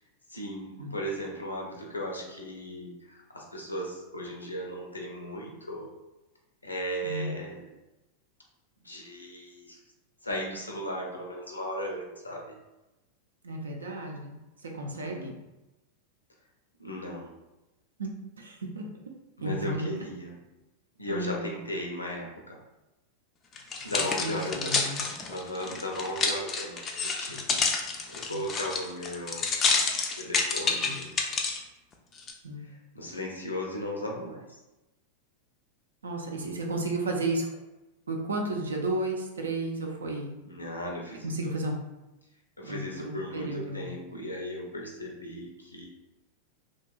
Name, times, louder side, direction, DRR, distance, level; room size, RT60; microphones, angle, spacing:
voice 1, 0.3-5.9 6.6-7.7 8.8-9.8 10.2-12.6 14.9-15.3 16.8-17.4 19.4-20.4 21.0-22.6 23.8-24.8 25.3-29.5 30.2-31.2 32.6-34.4 36.3-36.5 40.5-41.5 42.6-45.9, equal, 80° left, -1 dB, 0.5 m, -36 dB
voice 2, 7.0-7.4 13.4-15.3 18.0-18.9 19.4-20.0 21.1-21.5 23.8-25.0 28.3-28.4 30.8-31.0 32.4-32.7 36.0-37.5 38.1-40.3 41.2-41.8 42.6-43.9, right 2 dB, 70° right, 1 dB, 0.5 m, -33 dB
sound 1, 23.6-31.6 32.2-32.3, left 4 dB, 25° left, 0.3 m, -29 dB
2.8 x 2.2 x 2.4 m, 1.0 s
figure-of-eight pair, 90°, 0 cm